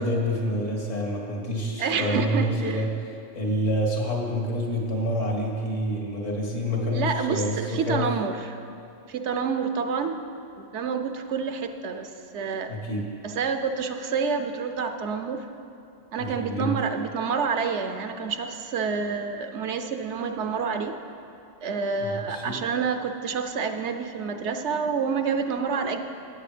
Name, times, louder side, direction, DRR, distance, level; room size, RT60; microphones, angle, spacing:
voice 1, 0.0-8.1 12.7-13.1 16.2-16.7 22.0-22.6, equal, 75° left, -1 dB, 2.2 m, -27 dB
voice 2, 1.8-2.9 6.9-8.6 9.1-10.2 10.6-12.7 13.2-15.5 16.1-21.0 21.6-26.0, right 5 dB, 70° right, 7 dB, 1.0 m, -28 dB
13.0 x 8.9 x 5.0 m, 2.6 s
omnidirectional pair, 1.3 m